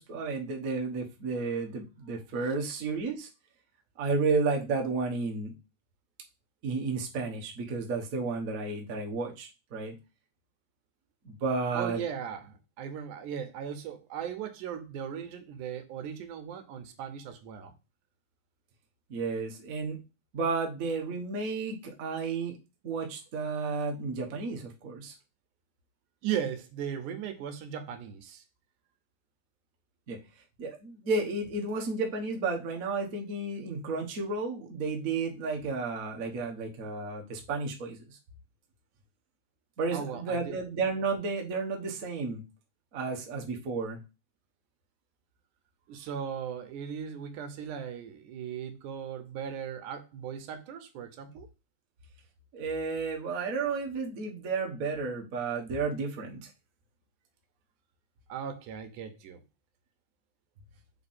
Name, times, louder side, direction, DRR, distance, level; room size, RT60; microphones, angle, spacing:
voice 1, 0.0-3.3 4.0-5.5 6.6-10.0 11.2-12.0 19.1-20.0 20.3-22.6 22.8-25.1 30.1-30.2 30.6-38.2 39.8-42.4 42.9-44.0 52.5-56.5, right 4 dB, 60° right, 0.9 m, -32 dB
voice 2, 11.7-17.7 26.2-28.4 39.9-40.6 45.9-51.5 58.3-59.4, right 8 dB, 85° right, 2.4 m, -37 dB
6.8 x 3.7 x 4.3 m
omnidirectional pair, 3.5 m